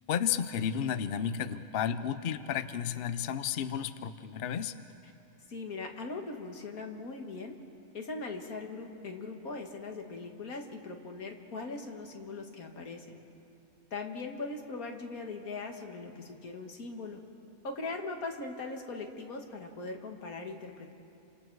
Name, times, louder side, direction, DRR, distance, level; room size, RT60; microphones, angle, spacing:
voice 1, 0.1-4.7, left 8 dB, 50° left, 11 dB, 0.8 m, -32 dB
voice 2, 5.5-7.5 7.9-13.2 13.9-17.2 17.6-20.9, left 3 dB, 85° left, 3 dB, 2.2 m, -40 dB
30.0 x 25.5 x 4.7 m, 2.8 s
omnidirectional pair, 1.5 m